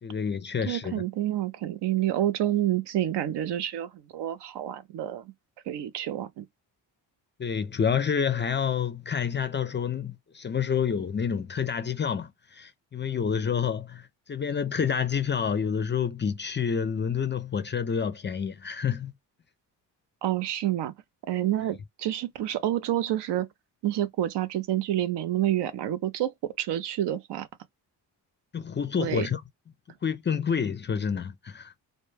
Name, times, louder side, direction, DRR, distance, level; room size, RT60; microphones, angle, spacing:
voice 1, 0.0-1.0 7.4-19.1 28.5-29.4 30.0-31.7, left 7 dB, 30° left, 0.4 m, -28 dB
voice 2, 0.6-5.3 5.7-6.4 20.2-20.9 21.2-23.5 23.8-27.5 29.0-29.3, right 12 dB, 70° right, 0.5 m, -28 dB
2.1 x 2.1 x 3.1 m
cardioid pair, 70°, 43 cm